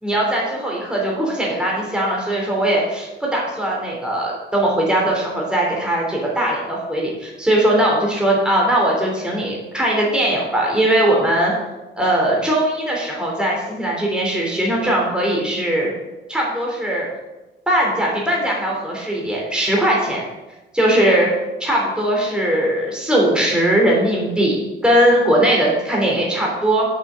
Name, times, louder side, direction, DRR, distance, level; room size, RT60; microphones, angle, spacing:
voice 1, 0.0-11.5 12.0-15.9 16.3-17.1 17.7-20.2 20.7-21.3 21.6-24.6 24.8-26.9, right 1 dB, 5° right, -3 dB, 3.0 m, -19 dB
6.6 x 6.3 x 7.5 m, 1.1 s
cardioid pair, 90°, 20 cm